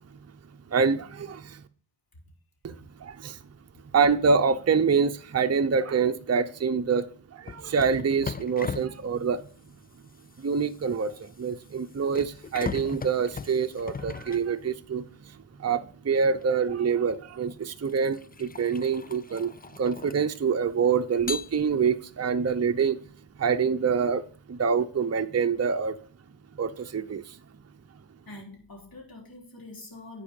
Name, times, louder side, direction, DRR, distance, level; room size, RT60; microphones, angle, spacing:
voice 1, 0.7-1.6 2.6-2.7 3.0-3.4 3.9-9.5 10.4-15.0 15.6-23.0 23.4-26.0 26.6-27.4, right 6 dB, 35° right, 0.7 m, -26 dB
sound 1, 7.5-15.1 16.4-16.6 17.3-20.7 21.2-22.1, left 5 dB, 20° left, 0.4 m, -39 dB
voice 2, 28.3-30.2, left 2 dB, 50° left, 3.8 m, -44 dB
9.9 x 4.8 x 5.2 m
wide cardioid pair, 60°, 44 cm